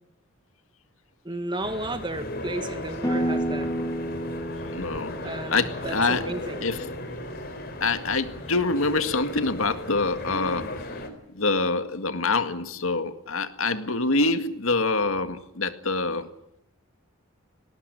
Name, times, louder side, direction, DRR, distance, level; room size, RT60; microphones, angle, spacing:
voice 1, 1.2-3.7 5.2-6.7, right 1 dB, 20° right, 9 dB, 2.0 m, -33 dB
sound 1, 1.6-11.1, left 1 dB, 45° left, 3.8 m, -36 dB
sound 2, 3.0-8.6, equal, 20° left, 3.5 m, -33 dB
voice 2, 4.7-5.1 5.5-6.3 6.6-6.8 7.8-10.7 11.3-16.3, left 3 dB, 75° left, 9 dB, 1.9 m, -25 dB
19.0 x 19.0 x 9.9 m, 0.77 s
head